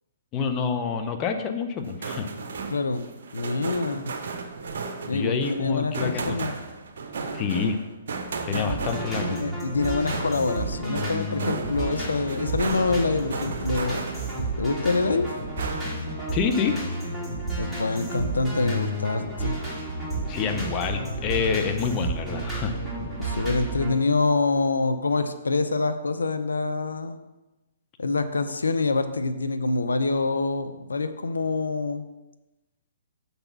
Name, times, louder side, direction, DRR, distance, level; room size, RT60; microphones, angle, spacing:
voice 1, 0.3-2.3 5.1-6.4 7.3-7.8 8.4-9.4 16.3-16.8 20.3-22.7, left 6 dB, 30° left, 6 dB, 0.7 m, -27 dB
sound 1, 1.8-14.5 14.9-16.1, right 4 dB, 65° right, 1.0 m, -35 dB
voice 2, 2.7-3.1 3.3-4.1 5.1-6.6 8.5-8.8 9.3-14.1 14.6-15.3 17.6-19.6 23.2-27.2 28.0-32.0, left 3 dB, 85° left, 9 dB, 0.5 m, -26 dB
sound 2, 8.7-23.9, right 2 dB, ahead, 2.7 m, -31 dB
6.6 x 4.0 x 6.0 m, 1.0 s
hypercardioid pair, 130°, 0 cm